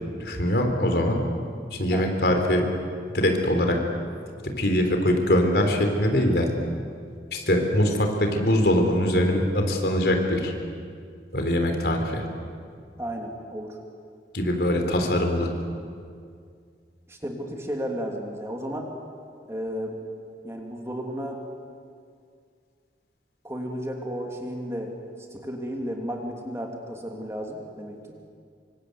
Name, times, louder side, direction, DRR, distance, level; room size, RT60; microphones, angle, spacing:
voice 1, 0.2-1.2 1.7-2.6 3.1-3.8 4.4-6.5 7.3-10.5 11.3-12.2 14.3-15.5, left 1 dB, 65° left, 4 dB, 3.8 m, -22 dB
voice 2, 13.0-13.8 17.1-18.9 19.5-19.9 20.4-21.4 23.4-24.9 25.3-28.0, equal, 15° right, 1 dB, 3.0 m, -33 dB
27.5 x 25.0 x 8.1 m, 2.2 s
head